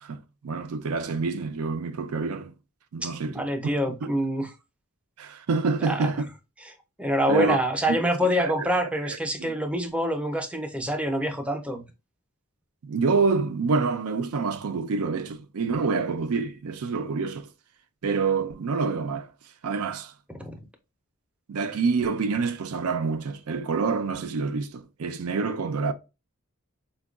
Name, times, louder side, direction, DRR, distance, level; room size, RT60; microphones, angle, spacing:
voice 1, 0.0-2.5 2.9-3.4 5.2-6.3 7.3-7.6 7.9-8.0 8.4-8.7 9.1-9.5 12.8-17.5 18.0-19.3 19.6-20.1 21.5-25.9, right 4 dB, 85° right, 0.5 m, -27 dB
voice 2, 3.0-4.5 5.8-6.1 7.0-11.8 20.3-20.6, equal, 5° right, 0.5 m, -26 dB
4.3 x 2.2 x 2.3 m
head